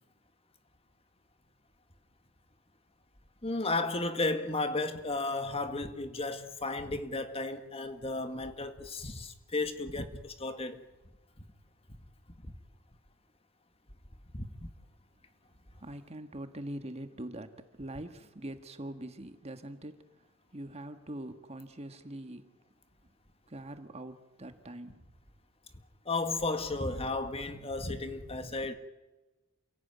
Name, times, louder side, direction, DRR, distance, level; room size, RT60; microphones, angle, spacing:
voice 1, 3.4-10.8 14.3-14.7 26.1-28.7, left 2 dB, 30° left, 1.9 m, -34 dB
voice 2, 15.8-20.0 20.5-22.5 23.5-25.0, right 1 dB, 30° right, 1.6 m, -43 dB
28.5 x 17.5 x 9.4 m
head